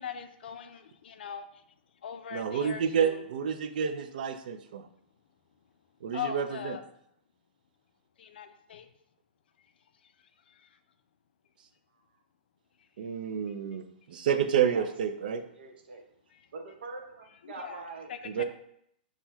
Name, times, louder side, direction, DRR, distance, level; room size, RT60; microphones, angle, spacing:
voice 1, 0.0-1.6 2.0-3.2 6.1-6.8 8.2-8.9 10.0-10.1 10.5-10.8 13.5-13.6 16.3-16.5 17.4-17.8 18.1-18.4, left 8 dB, 80° left, 8 dB, 0.4 m, -40 dB
voice 2, 2.3-4.8 6.0-6.8 13.0-15.4 18.2-18.4, right 7 dB, 60° right, 8 dB, 0.3 m, -29 dB
voice 3, 15.3-16.1 16.5-18.1, right 3 dB, 85° right, 3 dB, 0.7 m, -43 dB
5.7 x 2.1 x 2.3 m, 0.72 s
hypercardioid pair, 175°, 5 cm